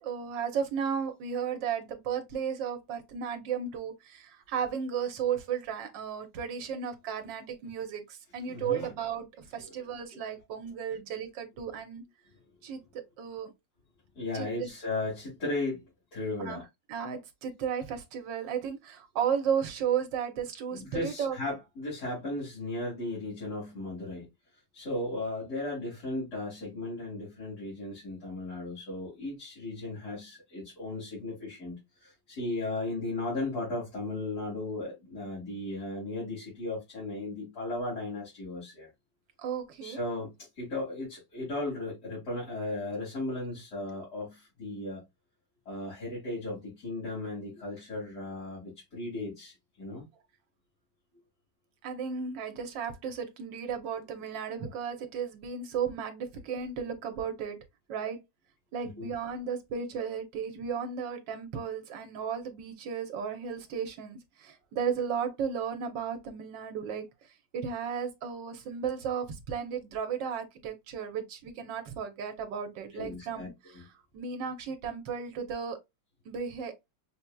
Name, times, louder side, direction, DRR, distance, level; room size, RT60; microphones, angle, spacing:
voice 1, 0.0-12.1 12.6-13.5 14.3-14.7 16.4-16.6 16.9-21.4 39.4-40.0 51.8-57.6 57.9-58.2 58.7-67.1 67.5-73.8 74.1-75.8 76.2-76.7, right 7 dB, 80° right, 1.6 m, -34 dB
voice 2, 8.5-8.9 9.6-9.7 14.1-15.8 16.1-16.6 20.7-24.3 24.7-38.9 39.8-45.0 45.7-50.0 59.0-59.1 72.9-73.8, left 2 dB, 60° left, 2.9 m, -36 dB
6.1 x 2.8 x 2.2 m
omnidirectional pair, 2.0 m